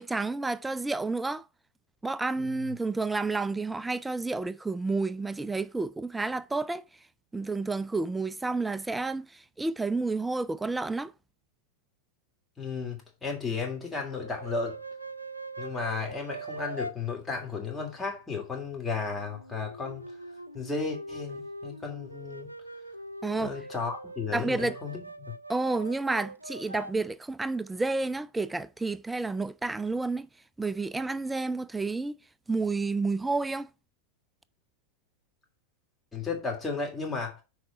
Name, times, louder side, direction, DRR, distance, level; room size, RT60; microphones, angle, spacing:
voice 1, 0.0-1.4 2.0-6.8 7.3-11.1 23.2-23.5 24.3-24.8 25.5-30.3 30.6-32.2 32.5-33.7, right 3 dB, 10° right, 0.3 m, -30 dB
voice 2, 12.6-14.8 15.6-20.1 20.5-22.5 23.4-25.3 36.1-37.4, left 4 dB, 10° left, 2.8 m, -34 dB
sound 1, 14.1-16.9 18.9-26.9, right 2 dB, 85° right, 0.6 m, -42 dB
6.3 x 4.8 x 6.6 m
figure-of-eight pair, 90°, 0 cm